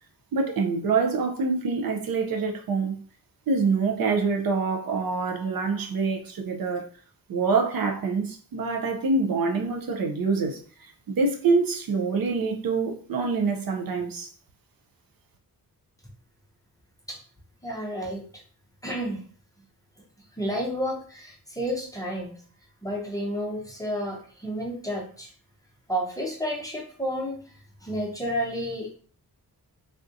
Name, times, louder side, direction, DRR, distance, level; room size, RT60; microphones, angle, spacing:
voice 1, 0.3-3.0 3.5-6.9 7.3-14.3, right 4 dB, 60° right, 0.6 m, -26 dB
voice 2, 17.6-18.2 18.8-19.2 20.4-22.3 22.8-25.3 25.9-27.4 27.8-28.9, equal, 10° left, 0.5 m, -31 dB
3.5 x 2.6 x 2.5 m
wide cardioid pair, 165°, 39 cm